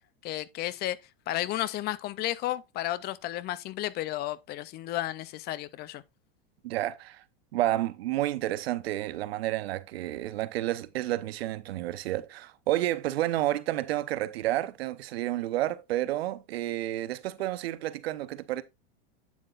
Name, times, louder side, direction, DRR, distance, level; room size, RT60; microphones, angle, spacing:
voice 1, 0.2-1.0 1.3-6.0, left 14 dB, 35° left, 0.5 m, -33 dB
voice 2, 6.6-7.2 7.5-18.6, right 14 dB, 75° right, 0.8 m, -30 dB
8.5 x 7.5 x 2.4 m
supercardioid pair, 120°, 31 cm